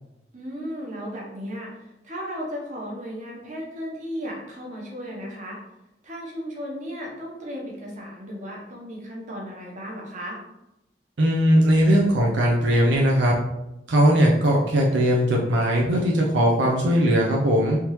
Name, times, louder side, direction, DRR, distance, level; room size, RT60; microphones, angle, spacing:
voice 1, 0.3-5.6 6.0-10.4, equal, 45° right, -2 dB, 1.1 m, -35 dB
voice 2, 11.2-13.4 13.9-17.8, equal, 80° right, -2 dB, 0.6 m, -19 dB
3.5 x 2.9 x 3.1 m, 0.89 s
head